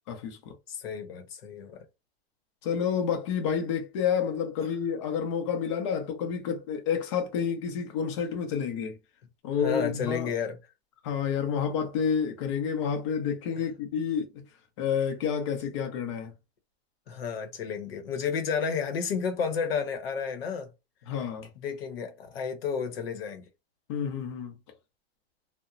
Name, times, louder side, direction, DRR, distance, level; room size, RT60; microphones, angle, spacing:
voice 1, 0.1-0.5 2.6-9.0 9.4-10.3 11.0-14.4 14.8-16.3 21.1-21.5 23.9-24.5, left 7 dB, 30° left, 0.5 m, -29 dB
voice 2, 0.7-1.8 9.6-10.6 17.1-20.7 21.6-23.5, left 6 dB, 60° left, 0.8 m, -31 dB
2.8 x 2.1 x 2.4 m
supercardioid pair, 165°, 33 cm